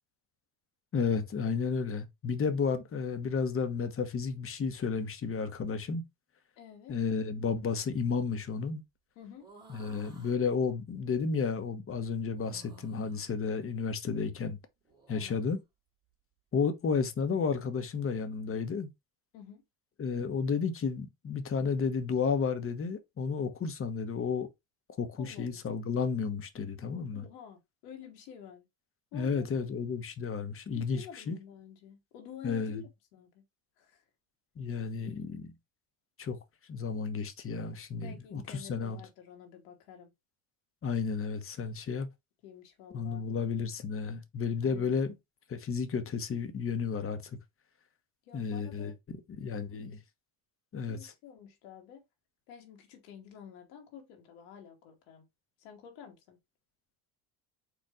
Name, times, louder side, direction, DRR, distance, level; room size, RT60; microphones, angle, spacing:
voice 1, 0.9-6.0 6.9-8.8 9.7-14.6 15.1-15.6 16.5-18.9 20.0-24.5 25.0-27.2 29.1-31.4 32.4-32.8 34.6-35.5 36.2-36.4 36.7-39.0 40.8-42.1 42.9-45.1 45.5-47.4 48.3-48.9 49.3-50.0 50.7-51.1, left 5 dB, 30° left, 0.9 m, -32 dB
voice 2, 6.6-7.0 9.1-9.5 15.1-15.4 19.3-19.6 25.2-25.7 27.1-28.7 29.1-29.5 30.7-33.4 33.8-34.0 38.0-40.1 42.4-43.2 44.6-45.0 48.2-48.9 50.9-52.0 52.5-55.3 55.6-56.4, left 8 dB, 90° left, 1.4 m, -50 dB
sound 1, 9.4-10.4 12.3-13.3 14.8-15.5, right 3 dB, 10° right, 2.2 m, -56 dB
4.4 x 2.5 x 4.8 m
supercardioid pair, 105°, 44 cm